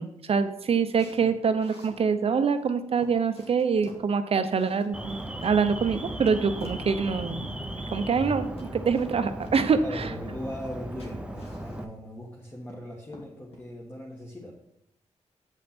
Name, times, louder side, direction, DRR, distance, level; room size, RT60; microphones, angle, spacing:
voice 1, 0.0-7.5 7.9-10.1, right 5 dB, 55° right, 10 dB, 0.6 m, -25 dB
sound 1, 0.9-2.0 2.6-2.7 3.0-4.1 4.5-5.5 5.9-6.9 7.5-8.3 8.6-9.1 9.4-9.6 10.6-10.7 11.0-12.0 12.4-12.8 13.1-13.7, left 1 dB, 55° left, 1.5 m, -47 dB
Alarm, 4.9-11.8, right 1 dB, 10° right, 0.7 m, -37 dB
voice 2, 9.8-14.5, equal, 20° left, -2 dB, 1.5 m, -39 dB
8.2 x 5.2 x 4.3 m, 0.79 s
cardioid pair, 75°, 12 cm